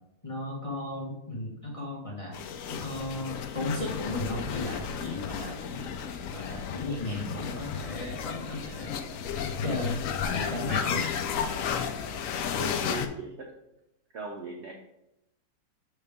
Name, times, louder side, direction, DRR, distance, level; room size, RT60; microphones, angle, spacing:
voice 1, 0.2-2.4 2.7-5.9 6.3-9.0 9.6-10.0 10.3-11.0, left 2 dB, 25° left, -4 dB, 0.7 m, -35 dB
sound 1, 2.3-13.1, left 7 dB, 90° left, 0.7 m, -33 dB
sound 2, 4.8-12.2, right 2 dB, 35° right, 1.0 m, -49 dB
voice 2, 12.6-13.5 14.1-14.7, right 3 dB, 65° right, 1 dB, 0.6 m, -38 dB
6.6 x 4.6 x 3.4 m, 0.88 s
omnidirectional pair, 2.0 m